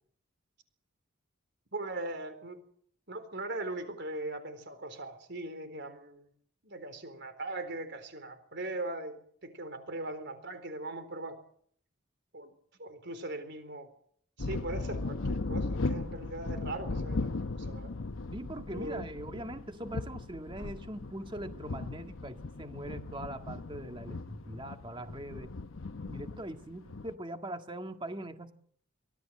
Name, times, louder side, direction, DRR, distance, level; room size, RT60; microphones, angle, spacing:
voice 1, 1.7-2.6 3.1-6.3 6.6-11.4 12.3-12.5 12.8-13.9 14.4-17.9 18.7-19.0, right 2 dB, 55° right, 10 dB, 4.0 m, -40 dB
sound 1, 14.4-27.1, left 3 dB, 70° left, 0.8 m, -37 dB
voice 2, 18.3-25.5 26.1-28.5, right 1 dB, 25° right, 6 dB, 1.7 m, -41 dB
25.0 x 17.0 x 7.6 m, 0.64 s
head